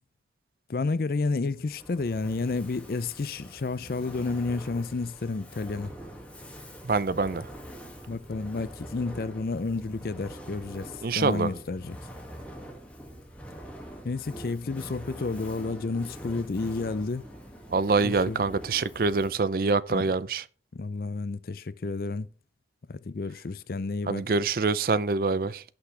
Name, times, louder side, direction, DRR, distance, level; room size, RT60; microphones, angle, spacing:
voice 1, 0.7-5.9 8.1-12.0 14.0-17.2 18.0-18.4 19.9-20.1 20.7-22.3 22.9-24.3, left 3 dB, 55° left, 0.5 m, -31 dB
Fire, 1.5-19.5, equal, 10° left, 2.0 m, -44 dB
voice 2, 6.8-7.5 11.0-11.5 17.7-20.4 24.1-25.6, right 4 dB, 55° right, 0.5 m, -25 dB
17.0 x 6.0 x 3.3 m
head